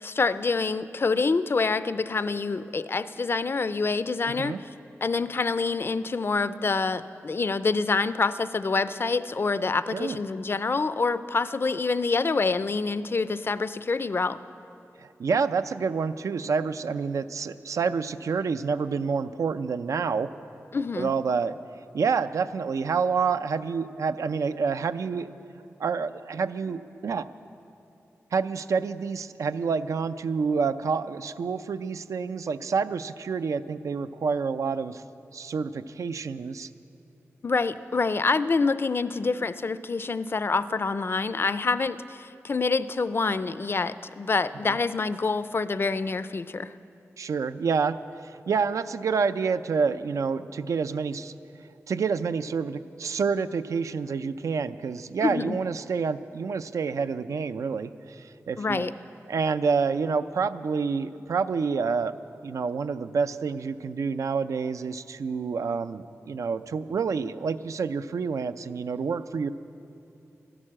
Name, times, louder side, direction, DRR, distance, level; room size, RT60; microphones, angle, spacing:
voice 1, 0.0-4.7 5.0-14.4 20.7-21.1 37.4-46.7 55.2-55.6 58.6-58.9, left 4 dB, 45° left, 14 dB, 0.4 m, -26 dB
voice 2, 15.0-20.3 21.0-21.6 21.9-25.3 25.8-27.3 28.3-35.0 35.3-36.7 44.6-44.7 47.2-51.3 51.9-58.8 59.3-62.1 62.4-69.5, right 5 dB, 90° right, 12 dB, 0.4 m, -28 dB
13.0 x 11.0 x 7.4 m, 2.7 s
wide cardioid pair, 80°, 5 cm